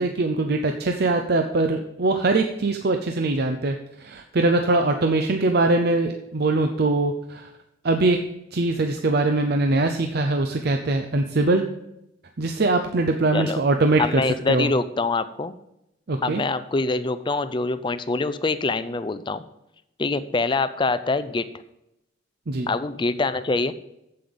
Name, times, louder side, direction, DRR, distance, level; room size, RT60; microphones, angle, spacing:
voice 1, 0.0-7.5 7.8-8.2 8.5-11.7 12.4-14.7 16.1-16.4 22.5-22.7, right 2 dB, 50° right, 5 dB, 0.6 m, -22 dB
voice 2, 14.0-15.5 16.2-19.4 20.0-21.5 22.7-23.7, left 3 dB, 25° left, 13 dB, 0.4 m, -24 dB
8.7 x 7.8 x 5.3 m, 0.85 s
head